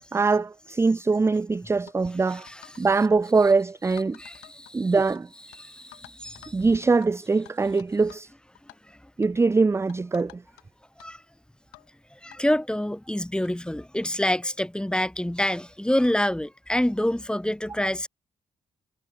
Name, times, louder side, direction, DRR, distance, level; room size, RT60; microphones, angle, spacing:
voice 1, 0.1-2.5 2.8-4.2 4.7-5.3 6.5-8.3 9.2-10.4, right 4 dB, 20° right, 0.4 m, -22 dB
sound 1, 1.9-2.0 2.5-2.8 3.1-3.3 3.9-5.2 5.5-5.6 5.9-6.6 7.0-7.1 7.5-8.3 8.5-8.8 9.2-9.4 9.9-10.6 11.0-11.1 11.7-11.9 12.3-12.4 13.1-13.2 13.4-13.5 14.0-14.2 15.0-15.1 16.0-16.2, left 31 dB, 90° left, 3.6 m, -50 dB
voice 2, 4.2-4.9 5.6-6.6 11.0-11.2 12.2-18.1, left 1 dB, 5° left, 1.7 m, -27 dB
hypercardioid pair, 45°, 15 cm